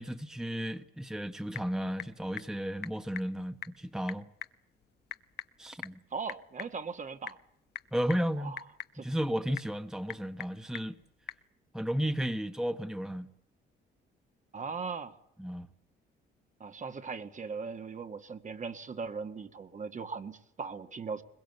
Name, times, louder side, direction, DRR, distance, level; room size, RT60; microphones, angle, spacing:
voice 1, 0.0-4.3 5.6-6.0 7.9-8.6 9.0-11.0 11.7-13.3 15.4-15.7, equal, 5° right, 1.2 m, -33 dB
Typing / Telephone, 1.0-11.5, left 9 dB, 55° left, 1.1 m, -47 dB
voice 2, 6.1-7.4 8.4-8.6 8.9-9.1 14.5-15.1 16.6-21.2, right 5 dB, 40° right, 1.8 m, -39 dB
21.5 x 21.5 x 8.1 m
cardioid pair, 90°, 20 cm